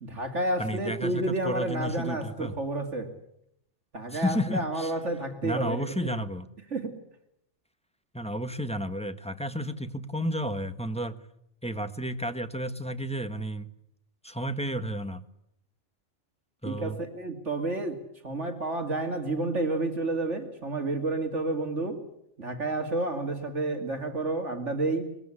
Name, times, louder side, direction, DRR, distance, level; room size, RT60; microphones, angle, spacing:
voice 1, 0.0-3.1 3.9-6.1 6.7-7.0 16.6-22.0 22.4-25.1, right 2 dB, 70° right, 6 dB, 2.9 m, -30 dB
voice 2, 0.6-2.5 4.1-4.9 5.4-6.5 8.1-11.2 11.6-13.7 14.2-15.2 16.6-17.0, equal, 5° left, 8 dB, 1.5 m, -32 dB
23.0 x 21.0 x 9.9 m, 0.76 s
omnidirectional pair, 1.2 m